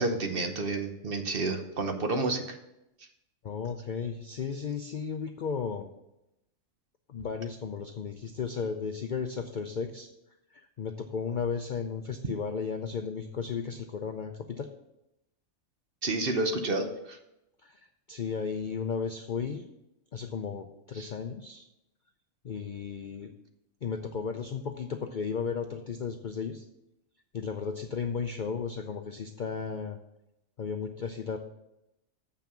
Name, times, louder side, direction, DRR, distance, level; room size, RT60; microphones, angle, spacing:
voice 1, 0.0-2.6 16.0-17.2 21.0-21.1, right 2 dB, 45° right, 5 dB, 1.0 m, -30 dB
voice 2, 3.4-5.9 7.1-10.1 10.5-14.7 17.6-19.7 20.1-21.7 22.4-23.3 23.8-26.7 27.3-30.0 30.6-31.4, left 6 dB, 55° left, 6 dB, 0.5 m, -34 dB
7.1 x 5.9 x 6.9 m, 0.88 s
omnidirectional pair, 1.4 m